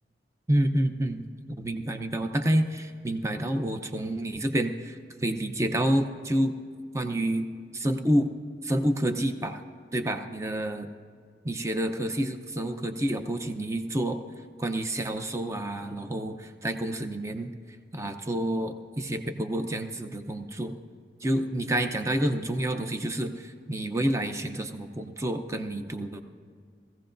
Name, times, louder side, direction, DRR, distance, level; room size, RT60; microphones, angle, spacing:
voice 1, 0.5-1.3 1.6-5.0 5.2-6.5 6.9-7.5 7.7-8.3 8.6-9.6 9.9-10.9 11.4-14.2 14.6-17.5 17.9-20.7 21.2-26.2, right 1 dB, 15° right, 7 dB, 0.6 m, -28 dB
19.0 x 15.5 x 2.6 m, 2.2 s
head